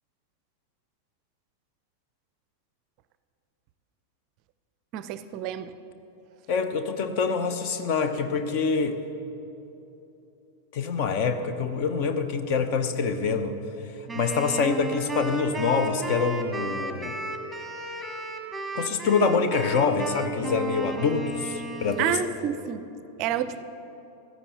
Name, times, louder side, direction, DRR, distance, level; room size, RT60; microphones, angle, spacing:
voice 1, 4.9-5.8 22.0-22.8 23.2-23.6, right 10 dB, 40° right, 14 dB, 0.5 m, -29 dB
voice 2, 6.5-9.0 10.7-13.6 14.1-17.2 18.7-22.2, left 5 dB, 45° left, 9 dB, 0.9 m, -25 dB
Wind instrument woodwind instrument, 14.1-22.5, right 1 dB, 5° right, 1.4 m, -34 dB
15.5 x 13.5 x 4.1 m, 3.0 s
figure-of-eight pair, 90°, 0 cm